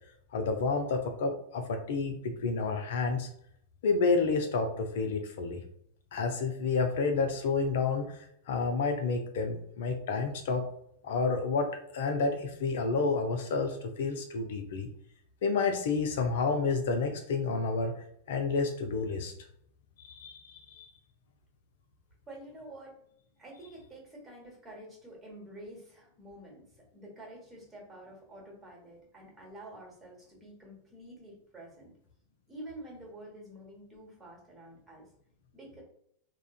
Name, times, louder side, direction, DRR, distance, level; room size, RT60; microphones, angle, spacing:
voice 1, 0.3-3.3 3.8-5.6 6.1-10.6 11.0-14.9 15.4-17.9 18.3-19.3 20.0-20.9, left 4 dB, 55° left, 5 dB, 0.4 m, -30 dB
voice 2, 22.3-23.0 23.4-31.9 32.5-35.1 35.5-35.8, right 1 dB, 15° right, -2 dB, 1.2 m, -48 dB
3.6 x 2.1 x 2.4 m, 0.70 s
figure-of-eight pair, 90°, 0 cm